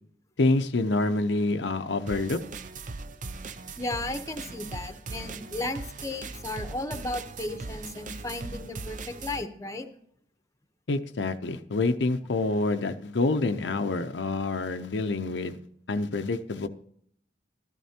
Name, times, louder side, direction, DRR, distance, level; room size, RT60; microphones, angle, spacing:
voice 1, 0.4-2.4 10.9-15.6 15.9-16.7, left 2 dB, 80° left, 7 dB, 0.7 m, -27 dB
sound 1, 2.1-9.4, right 3 dB, 45° right, 0.6 m, -39 dB
voice 2, 3.8-9.9, left 2 dB, 20° left, 7 dB, 0.9 m, -35 dB
13.5 x 12.5 x 2.9 m, 0.65 s
head